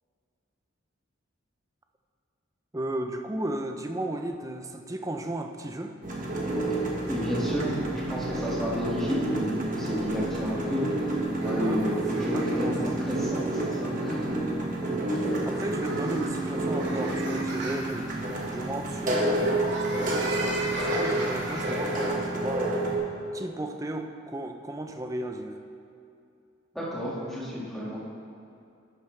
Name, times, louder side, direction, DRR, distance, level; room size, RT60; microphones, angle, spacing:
voice 1, 2.7-6.0 11.5-13.0 13.8-14.2 14.6-22.8 23.3-25.6, right 1 dB, 15° right, 5 dB, 0.5 m, -35 dB
sound 1, 6.0-23.0, right 1 dB, 40° right, 1.4 m, -29 dB
voice 2, 7.1-14.2 21.6-22.0 26.7-28.0, equal, ahead, -7 dB, 1.8 m, -32 dB
sound 2, 11.2-22.1, right 2 dB, 60° right, 1.2 m, -39 dB
11.5 x 8.5 x 3.2 m, 2.5 s
head